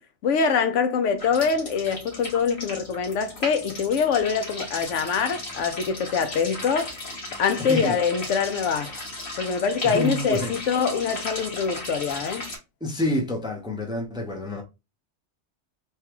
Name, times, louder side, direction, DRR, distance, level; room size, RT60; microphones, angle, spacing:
voice 1, 0.2-6.9 7.4-8.9 9.4-12.5, left 6 dB, 90° left, 1.0 m, -24 dB
sound 1, 1.2-12.6, left 2 dB, 60° left, 1.7 m, -36 dB
voice 2, 9.8-10.6 12.8-14.6, left 1 dB, 5° right, 0.4 m, -28 dB
3.3 x 2.3 x 2.9 m
omnidirectional pair, 1.2 m